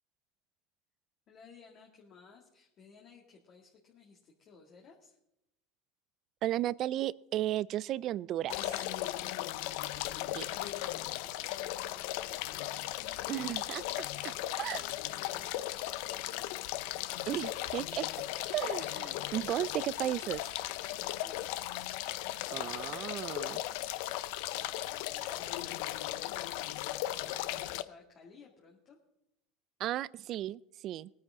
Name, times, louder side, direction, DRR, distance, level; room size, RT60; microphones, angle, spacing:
voice 1, 1.3-5.2 9.1-10.8 11.2-13.4 14.2-14.8 15.1-16.8 20.9-21.5 23.9-26.5 26.8-29.0, left 5 dB, 45° left, -1 dB, 2.0 m, -58 dB
voice 2, 6.4-8.8 10.3-10.5 13.3-14.3 14.6-14.8 17.3-18.1 18.5-20.4 22.5-23.6 29.8-31.1, right 13 dB, 50° right, 22 dB, 0.3 m, -35 dB
sound 1, 8.5-27.8, left 15 dB, 75° left, 0.5 m, -37 dB
19.5 x 9.4 x 3.7 m, 0.84 s
supercardioid pair, 120°, 0 cm